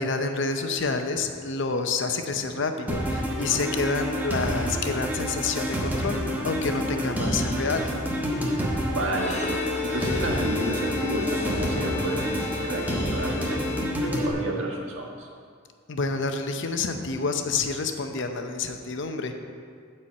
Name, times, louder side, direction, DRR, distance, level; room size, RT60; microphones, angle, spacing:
voice 1, 0.0-7.9 15.9-19.4, left 4 dB, 65° left, 6 dB, 0.7 m, -28 dB
sound 1, 2.9-14.3, equal, 10° right, 1.0 m, -28 dB
voice 2, 8.9-9.4 9.8-15.3, right 1 dB, 75° right, -1 dB, 1.5 m, -31 dB
Bowed string instrument, 9.1-14.4, left 5 dB, 35° left, 0.9 m, -34 dB
9.6 x 4.5 x 7.5 m, 2.1 s
head